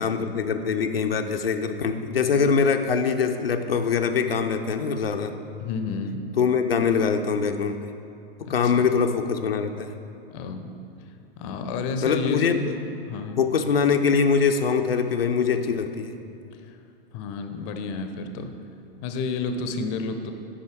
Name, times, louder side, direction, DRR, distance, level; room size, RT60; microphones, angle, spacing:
voice 1, 0.0-5.3 6.4-7.9 8.5-9.9 12.0-12.7 13.4-16.2, left 6 dB, 80° left, 5 dB, 0.5 m, -23 dB
voice 2, 5.6-6.3 8.5-8.9 10.3-10.7 11.4-12.7 13.1-13.4 16.5-16.8 17.1-18.6 19.0-20.3, left 4 dB, 35° left, 7 dB, 0.6 m, -30 dB
8.6 x 5.5 x 4.5 m, 2.6 s
figure-of-eight pair, 100°, 29 cm